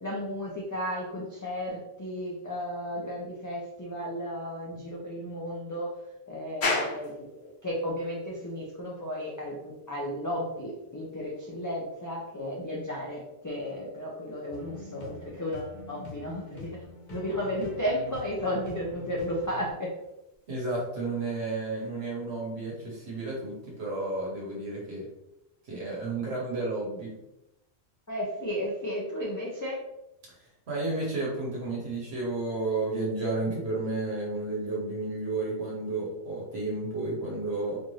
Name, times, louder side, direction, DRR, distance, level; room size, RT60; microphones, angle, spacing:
voice 1, 0.0-5.9 6.3-16.7 17.1-19.9 28.1-29.8, equal, 25° left, -4 dB, 0.4 m, -34 dB
sound 1, 6.6-24.1, left 2 dB, 75° left, 1.1 m, -42 dB
sound 2, 14.5-19.7, left 4 dB, 50° left, 0.8 m, -45 dB
voice 2, 20.5-25.1 25.6-27.1 30.3-30.4 30.7-37.8, right 2 dB, 70° right, -4 dB, 1.2 m, -32 dB
4.2 x 2.6 x 3.1 m, 0.89 s
omnidirectional pair, 1.1 m